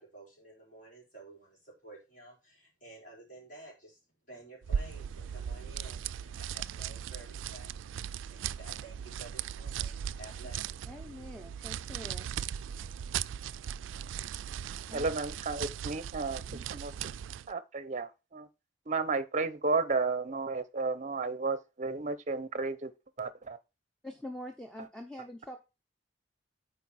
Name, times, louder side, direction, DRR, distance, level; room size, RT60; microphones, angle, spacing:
voice 1, 0.0-4.0 4.3-10.9, right 2 dB, 45° left, 4.2 m, -52 dB
sound 1, 4.6-17.5, right 8 dB, 80° right, 0.3 m, -38 dB
voice 2, 10.9-12.3 14.9-15.1 24.0-25.6, left 1 dB, 5° left, 0.8 m, -44 dB
voice 3, 14.9-16.9 17.5-18.5 18.9-22.9 23.2-23.6, right 3 dB, 40° right, 0.7 m, -33 dB
9.0 x 4.6 x 4.2 m
head